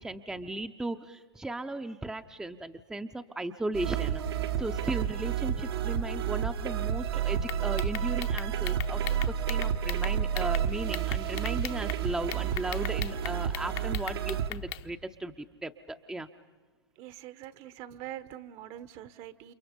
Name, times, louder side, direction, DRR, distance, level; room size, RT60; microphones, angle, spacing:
voice 1, 0.0-4.2 4.5-16.3, right 2 dB, 5° right, 7 dB, 0.7 m, -36 dB
sound 1, 3.7-14.5, right 9 dB, 70° right, 1.4 m, -30 dB
sound 2, 7.4-10.6 10.9-12.0 12.3-14.8, left 15 dB, 40° left, 0.9 m, -39 dB
voice 2, 17.0-19.5, right 12 dB, 45° right, 15 dB, 1.1 m, -44 dB
29.5 x 27.5 x 5.2 m, 1.4 s
hypercardioid pair, 110°, 13 cm